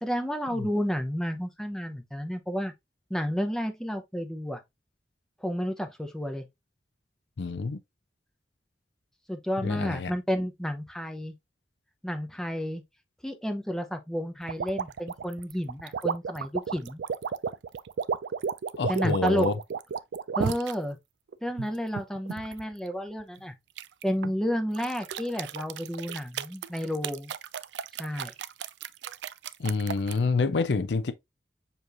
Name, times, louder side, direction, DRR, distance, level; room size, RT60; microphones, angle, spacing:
voice 1, 0.0-2.7 3.1-4.6 5.4-6.5 9.3-11.3 12.0-12.8 13.2-17.0 18.9-19.5 20.3-21.0 21.4-23.5 24.0-27.3 28.0-28.3, equal, 5° left, 0.7 m, -31 dB
voice 2, 7.4-7.8 9.6-10.1 18.8-19.6 29.6-31.1, left 4 dB, 85° left, 0.5 m, -27 dB
sound 1, 14.5-20.7 21.3-22.6 23.8-24.3 24.7-30.2, right 6 dB, 80° right, 0.4 m, -33 dB
6.9 x 3.1 x 2.5 m
head